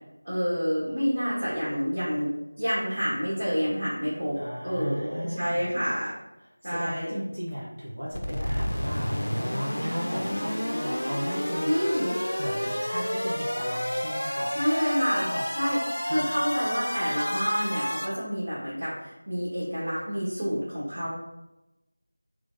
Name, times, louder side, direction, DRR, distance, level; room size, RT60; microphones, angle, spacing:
voice 1, 0.2-2.3 2.6-4.4 4.6-6.1 6.6-7.1 11.6-12.1 14.5-15.3 15.6-15.8 16.0-21.1, equal, 55° right, -9 dB, 1.4 m, -28 dB
voice 2, 4.4-5.7 6.6-11.7 12.1-14.5 15.1-15.5 16.1-16.2, equal, 80° right, -6 dB, 0.9 m, -35 dB
sound 1, 8.1-18.1, equal, 70° left, 0.6 m, -30 dB
3.4 x 3.2 x 2.6 m, 0.98 s
figure-of-eight pair, 175°, 0 cm